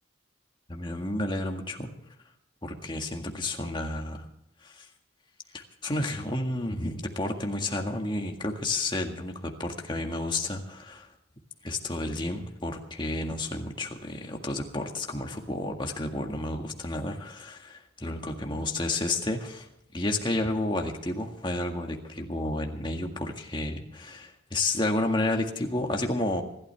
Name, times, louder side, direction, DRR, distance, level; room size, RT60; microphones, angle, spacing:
voice 1, 0.7-1.9 2.6-4.3 4.6-4.9 5.5-11.1 11.6-26.4, left 2 dB, 25° left, 2 dB, 1.8 m, -31 dB
26.0 x 12.0 x 3.5 m, 0.85 s
head